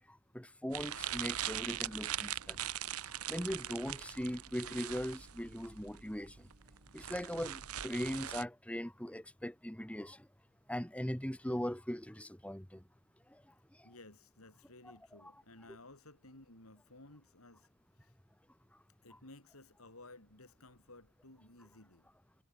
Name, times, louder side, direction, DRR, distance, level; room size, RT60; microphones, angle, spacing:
voice 1, 0.1-2.6 3.0-6.5 6.9-10.3 10.7-12.8 13.3-13.4, equal, 5° left, 1.9 m, -40 dB
sound 1, 0.7-8.4, right 11 dB, 90° right, 1.2 m, -41 dB
voice 2, 13.8-17.7 18.0-18.1 19.0-22.1, left 2 dB, 75° left, 5.7 m, -57 dB
head